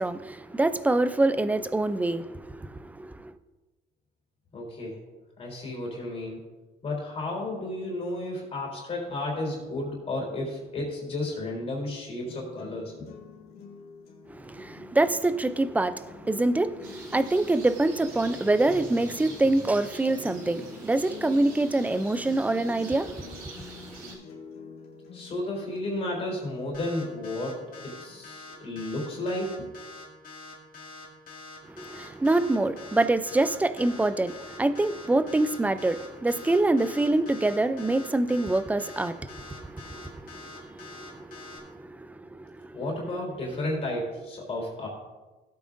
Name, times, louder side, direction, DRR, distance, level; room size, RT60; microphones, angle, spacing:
voice 1, 0.0-3.1 14.3-24.1 31.8-39.2 39.6-40.0 40.8-41.5 41.9-42.1, right 2 dB, 10° right, 0.4 m, -25 dB
voice 2, 4.5-5.0 5.4-6.4 6.8-13.1 25.1-27.6 27.8-29.7 42.7-44.9, left 1 dB, 40° left, 3.5 m, -32 dB
sound 1, 12.3-28.3, left 6 dB, 80° left, 2.2 m, -48 dB
sound 2, 16.8-24.1, right 3 dB, 70° right, 3.9 m, -47 dB
sound 3, 26.7-41.6, left 3 dB, 60° left, 2.4 m, -45 dB
17.0 x 8.5 x 2.6 m
cardioid pair, 130°, 16 cm